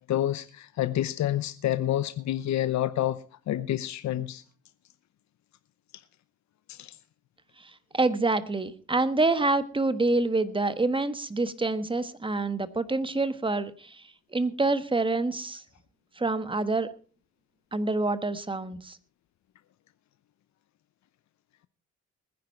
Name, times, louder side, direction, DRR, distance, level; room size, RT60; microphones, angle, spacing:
voice 1, 0.1-4.4 6.7-7.0, left 12 dB, 65° left, 0.8 m, -28 dB
voice 2, 7.6-14.0 14.3-15.6 16.2-16.9 17.7-19.0, right 3 dB, 15° right, 1.5 m, -27 dB
20.0 x 10.5 x 4.5 m
cardioid pair, 90°, 30 cm